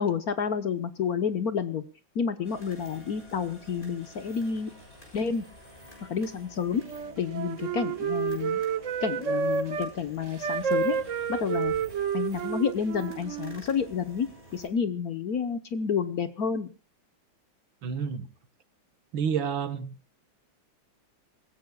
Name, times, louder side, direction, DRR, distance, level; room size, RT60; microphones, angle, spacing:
voice 1, 0.0-1.8 2.1-4.7 5.1-5.4 6.0-6.8 7.2-8.6 9.0-11.0 11.3-11.7 12.1-16.7, left 6 dB, 55° left, 11 dB, 1.3 m, -29 dB
sound 1, 2.4-14.7, equal, 25° left, 6.6 m, -50 dB
Wind instrument woodwind instrument, 6.8-9.9 10.4-13.6, right 7 dB, 50° right, 1.0 m, -30 dB
voice 2, 17.8-18.3 19.1-19.9, right 7 dB, 70° right, 12 dB, 2.1 m, -29 dB
26.5 x 15.5 x 2.3 m, 0.34 s
omnidirectional pair, 2.2 m